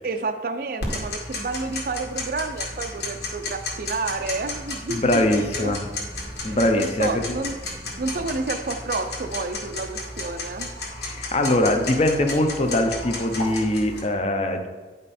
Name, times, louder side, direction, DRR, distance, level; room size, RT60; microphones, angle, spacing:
voice 1, 0.0-5.7 6.4-7.5 8.0-10.7, right 3 dB, 50° right, 7 dB, 0.5 m, -30 dB
Tick-tock, 0.8-14.0, left 2 dB, 75° left, 1.9 m, -33 dB
voice 2, 4.9-5.9 6.4-7.2 11.0-14.7, left 1 dB, 35° left, 5 dB, 0.8 m, -22 dB
9.9 x 5.3 x 4.2 m, 1.3 s
head